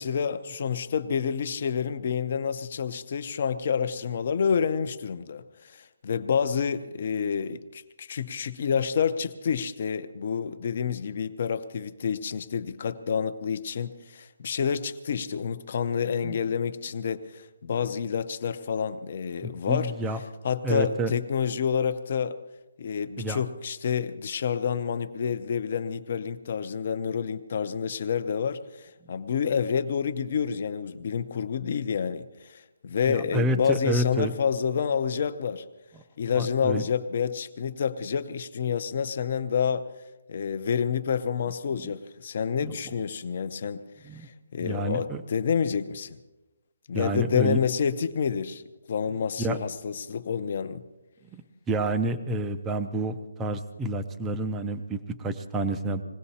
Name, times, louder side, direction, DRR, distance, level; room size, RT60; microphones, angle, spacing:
voice 1, 0.0-19.9 20.4-22.4 22.8-35.6 36.2-39.8 40.3-43.8 44.1-44.3 44.5-46.1 46.9-48.6 48.9-50.8, left 7 dB, 35° left, 11 dB, 0.7 m, -28 dB
voice 2, 19.4-20.2 20.6-21.1 23.2-23.4 33.1-34.3 36.3-36.8 41.8-41.9 42.6-42.7 44.0-44.3 44.6-45.2 46.9-47.6 49.1-49.6 51.3-56.0, right 1 dB, 5° right, 9 dB, 0.5 m, -29 dB
20.5 x 17.0 x 4.2 m, 1.1 s
hypercardioid pair, 180°, 0 cm